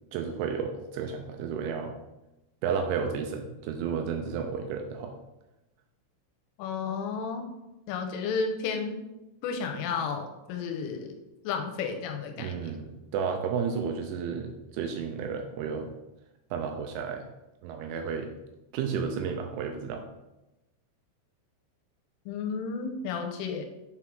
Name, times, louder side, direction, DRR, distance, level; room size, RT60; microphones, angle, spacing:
voice 1, 0.1-2.0 2.6-5.1 12.4-15.9 16.5-17.3 17.6-18.3 18.7-20.0, right 6 dB, 85° right, 4 dB, 2.8 m, -32 dB
voice 2, 6.6-7.4 7.9-9.0 9.4-11.1 11.4-12.5 22.3-23.7, left 5 dB, 80° left, 4 dB, 3.1 m, -32 dB
7.1 x 4.6 x 3.7 m, 0.97 s
omnidirectional pair, 5.7 m